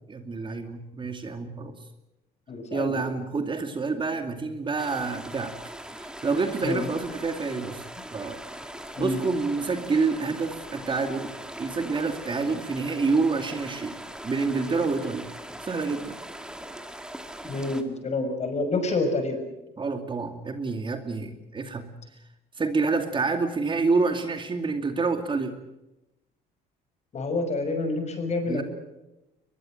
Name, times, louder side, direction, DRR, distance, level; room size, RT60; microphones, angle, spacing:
voice 1, 0.1-1.7 2.7-5.5 5.9-7.9 8.1-8.4 9.0-11.3 11.6-14.0 14.2-15.3 15.6-16.1 19.8-21.9 22.6-25.5 28.5-28.6, right 4 dB, 30° right, 7 dB, 2.4 m, -28 dB
voice 2, 2.5-3.0 6.6-6.9 8.9-9.2 17.4-19.4 27.1-28.6, left 2 dB, 40° left, 7 dB, 6.6 m, -28 dB
sound 1, 4.8-17.8, right 1 dB, 5° right, 2.4 m, -41 dB
22.5 x 22.0 x 7.7 m, 0.95 s
cardioid pair, 110°, 17 cm